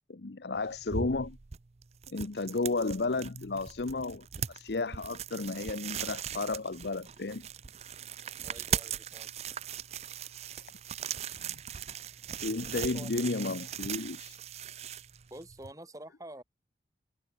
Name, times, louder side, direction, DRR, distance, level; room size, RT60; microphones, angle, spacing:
voice 1, 0.1-1.4 2.1-7.5 10.6-10.7 11.5-11.6 12.4-14.4, left 3 dB, 70° left, 0.8 m, -33 dB
sound 1, 0.5-15.7, right 8 dB, 35° right, 0.5 m, -39 dB
voice 2, 8.4-9.3 12.7-13.1 15.3-16.4, right 1 dB, 20° right, 4.1 m, -47 dB
head